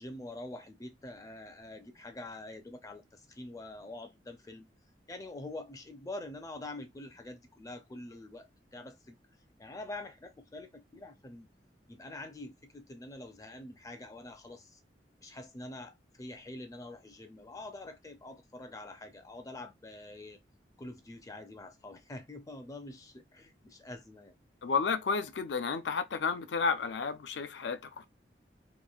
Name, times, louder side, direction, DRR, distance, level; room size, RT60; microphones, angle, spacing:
voice 1, 0.0-4.7 5.1-9.2 9.6-11.5 11.9-14.8 15.2-20.4 20.8-24.3, left 2 dB, 20° left, 0.4 m, -45 dB
voice 2, 24.6-28.1, left 5 dB, 80° left, 0.5 m, -32 dB
3.0 x 2.4 x 2.3 m
head